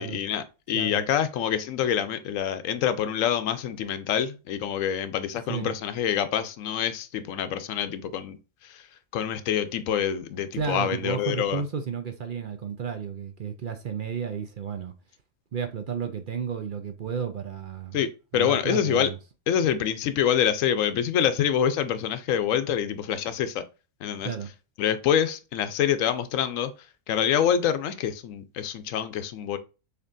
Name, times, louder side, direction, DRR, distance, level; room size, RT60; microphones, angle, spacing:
voice 1, 0.0-8.4 8.6-8.9 9.1-11.6 17.9-19.1 19.5-23.6 24.0-24.3 24.8-26.7 27.1-29.6, left 9 dB, 90° left, 1.0 m, -26 dB
voice 2, 10.5-14.9 15.5-18.0 18.3-19.2 24.2-24.5, right 7 dB, 50° right, 0.6 m, -32 dB
6.6 x 2.9 x 2.5 m
omnidirectional pair, 1.3 m